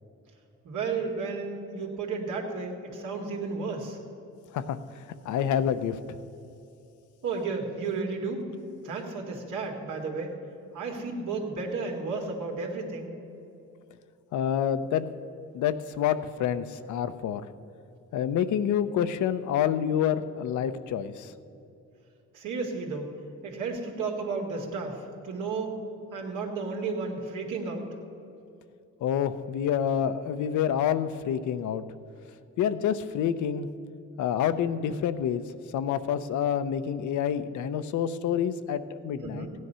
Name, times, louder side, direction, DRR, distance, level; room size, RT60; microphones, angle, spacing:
voice 1, 0.6-4.0 7.2-8.5 8.8-10.4 10.7-13.1 22.3-25.0 25.2-25.8 26.1-27.9 39.2-39.5, right 4 dB, 80° right, 0 dB, 2.2 m, -33 dB
voice 2, 4.5-6.2 14.3-15.1 15.5-17.4 18.1-21.3 29.0-31.8 32.6-33.7 34.2-35.4 35.7-39.5, left 9 dB, 75° left, 12 dB, 0.7 m, -28 dB
15.5 x 9.6 x 5.6 m, 2.7 s
cardioid pair, 90°, 30 cm